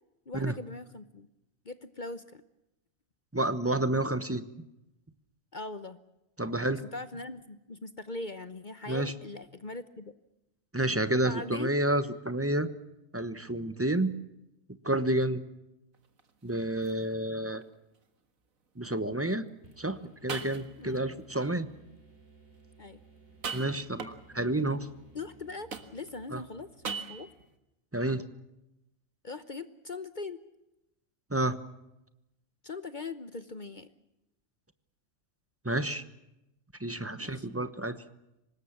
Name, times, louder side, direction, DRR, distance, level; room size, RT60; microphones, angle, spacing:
voice 1, 0.3-1.3 1.6-2.4 5.5-6.0 6.9-10.1 11.1-11.8 20.8-21.0 21.4-21.6 22.8-23.0 25.1-27.3 29.2-30.4 32.6-33.9 37.2-37.5, left 3 dB, 40° left, 12 dB, 1.0 m, -41 dB
voice 2, 3.3-4.4 6.4-6.8 8.9-9.1 10.7-12.7 13.1-14.1 14.8-15.4 16.4-17.6 18.8-19.5 19.8-21.7 23.5-24.9 26.3-26.4 27.9-28.2 31.3-31.6 35.6-36.0 36.8-38.0, right 1 dB, 10° right, 12 dB, 1.0 m, -29 dB
sound 1, 15.9-16.3 16.8-16.9 17.6-17.7 19.7-19.8 20.3-21.0 23.3-24.4 25.7-26.3 26.8-27.5, right 5 dB, 80° right, 2.1 m, -39 dB
sound 2, 19.6-27.3, right 3 dB, 45° right, 5.5 m, -58 dB
25.0 x 20.5 x 7.3 m, 0.91 s
omnidirectional pair, 1.4 m